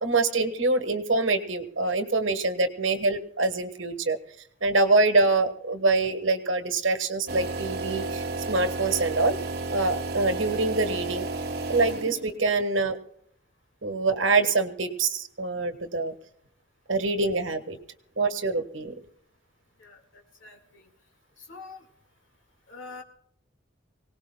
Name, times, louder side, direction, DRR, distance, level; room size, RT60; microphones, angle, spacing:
voice 1, 0.0-4.2 4.6-9.4 9.7-11.3 11.7-13.0 13.8-16.1 16.9-17.8 18.2-18.9, right 3 dB, 70° right, 8 dB, 1.3 m, -25 dB
sound 1, 7.3-12.4, right 3 dB, 50° right, 1.2 m, -32 dB
voice 2, 19.8-20.8 21.4-21.8 22.7-23.0, left 3 dB, 80° left, 2 dB, 2.1 m, -45 dB
24.5 x 18.5 x 2.2 m, 0.71 s
head